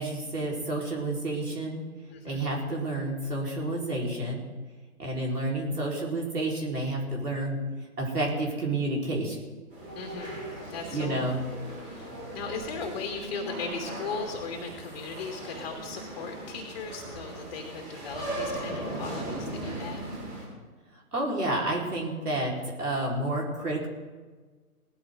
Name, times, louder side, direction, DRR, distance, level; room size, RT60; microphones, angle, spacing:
voice 1, 0.0-1.8 2.2-4.4 5.0-7.6 8.0-9.4 10.9-11.4 21.1-22.5 22.8-23.9, right 2 dB, 80° right, -2 dB, 5.0 m, -30 dB
voice 2, 2.1-2.6 9.9-11.5 11.8-20.0, left 4 dB, 30° left, 2 dB, 2.3 m, -38 dB
sound 1, 9.7-20.5, right 1 dB, 15° right, 4.1 m, -38 dB
18.0 x 14.0 x 4.0 m, 1.4 s
figure-of-eight pair, 140°, 45 cm